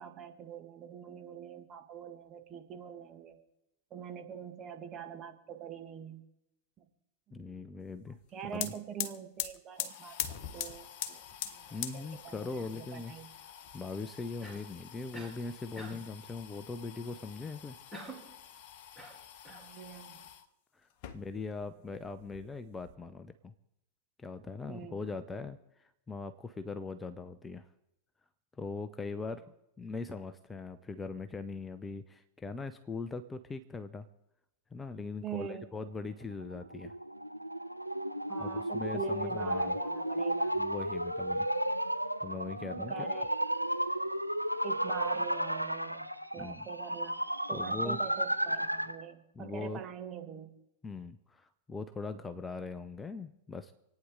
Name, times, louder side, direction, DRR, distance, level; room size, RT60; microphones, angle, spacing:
voice 1, 0.0-3.4 3.9-6.2 6.8-6.9 7.3-7.6 8.3-13.3 19.5-20.2 21.2-21.3 24.7-25.0 35.2-35.7 38.3-40.5 42.8-43.4 44.6-47.2 47.5-50.5, right 7 dB, 30° right, 5 dB, 2.0 m, -44 dB
voice 2, 7.3-8.2 8.5-8.7 11.7-13.1 13.4-17.8 20.7-23.5 24.2-27.7 28.6-29.4 29.8-34.1 34.7-36.9 38.4-39.8 40.6-41.5 42.2-42.9 46.4-46.7 47.5-48.0 49.3-49.8 50.8-53.7, left 4 dB, 15° left, 10 dB, 0.7 m, -41 dB
sound 1, 8.2-8.3 8.5-20.5 20.9-21.7 21.9-22.9, left 10 dB, 45° left, 1.3 m, -43 dB
Cough, 14.4-14.7 15.1-15.4 15.8-16.1 17.9-18.3 18.9-19.7, right 1 dB, 5° right, 3.0 m, -47 dB
sound 2, 36.3-49.0, right 1 dB, 90° right, 0.6 m, -33 dB
27.5 x 9.5 x 3.9 m, 0.86 s
figure-of-eight pair, 90°, 0 cm